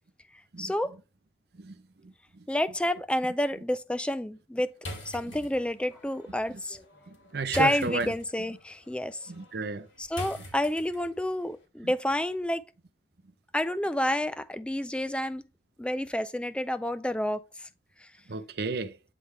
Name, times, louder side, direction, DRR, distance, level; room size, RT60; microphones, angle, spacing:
voice 1, 0.6-0.9 2.5-4.7 5.1-6.8 7.5-9.3 10.0-12.7 13.5-15.4 15.8-17.7, left 1 dB, 5° left, 0.3 m, -29 dB
sound 1, 4.8-11.3, left 1 dB, 90° left, 2.5 m, -44 dB
voice 2, 7.3-8.1 9.3-9.9 18.3-18.9, right 3 dB, 60° right, 0.7 m, -32 dB
9.7 x 3.4 x 3.3 m
head